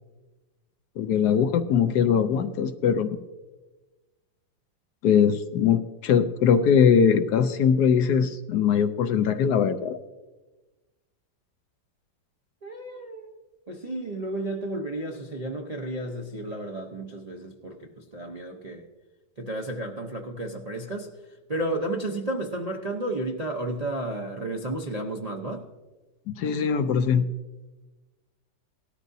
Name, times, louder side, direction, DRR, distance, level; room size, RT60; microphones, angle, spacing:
voice 1, 1.0-3.2 5.0-10.0 26.3-27.2, left 7 dB, 70° left, 10 dB, 1.1 m, -21 dB
voice 2, 12.6-13.3 13.7-18.8 19.4-21.1 21.5-25.7, right 1 dB, 45° right, 0 dB, 0.5 m, -32 dB
18.0 x 13.0 x 2.7 m, 1.2 s
omnidirectional pair, 2.0 m